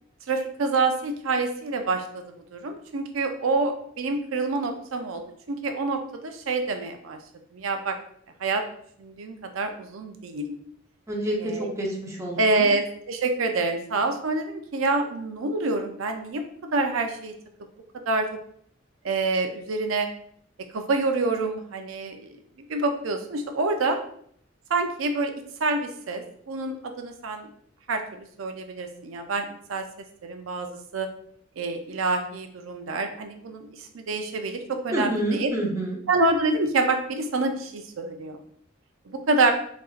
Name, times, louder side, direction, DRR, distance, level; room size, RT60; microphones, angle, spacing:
voice 1, 0.3-2.2 2.5-5.2 5.5-7.2 7.5-8.0 8.4-8.6 9.0-10.6 11.4-11.7 12.4-16.4 16.7-17.3 18.1-18.3 19.0-20.1 20.7-22.4 22.7-24.0 24.7-25.3 25.6-27.5 27.9-29.8 30.2-31.1 31.6-35.5 36.1-38.4 39.1-39.5, right 3 dB, 85° right, 5 dB, 0.5 m, -27 dB
voice 2, 11.1-12.7 34.9-36.0, right 1 dB, 15° right, -2 dB, 0.9 m, -28 dB
6.5 x 2.6 x 2.4 m, 0.63 s
head